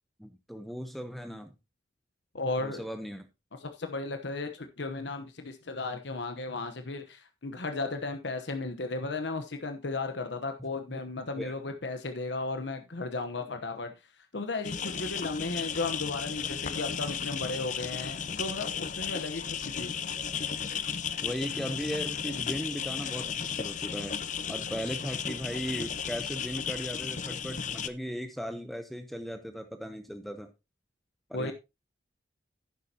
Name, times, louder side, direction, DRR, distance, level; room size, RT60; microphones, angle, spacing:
voice 1, 0.2-1.6 2.6-3.3 10.6-11.0 11.4-11.5 21.2-24.2 24.5-30.5 31.3-31.5, equal, ahead, 0.8 m, -37 dB
voice 2, 2.3-2.8 3.6-13.9 14.3-19.9 31.3-31.5, left 3 dB, 70° left, 1.1 m, -35 dB
sound 1, 14.6-27.9, left 7 dB, 40° left, 0.6 m, -34 dB
11.0 x 9.8 x 2.9 m
head